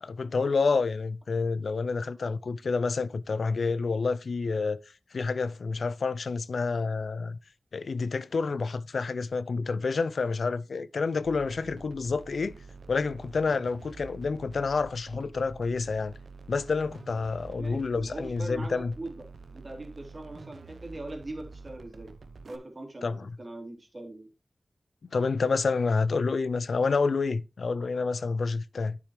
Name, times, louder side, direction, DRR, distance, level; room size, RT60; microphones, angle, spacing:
voice 1, 0.0-4.8 5.1-7.4 7.7-12.5 12.9-16.1 16.5-18.9 23.0-23.3 25.1-29.0, left 4 dB, 90° left, 0.4 m, -28 dB
sound 1, 11.2-22.6, right 4 dB, 85° right, 0.7 m, -47 dB
voice 2, 17.5-19.2 19.5-22.1 22.5-24.3, right 2 dB, 50° right, 2.8 m, -41 dB
10.0 x 6.1 x 3.1 m
cardioid pair, 45°, 0 cm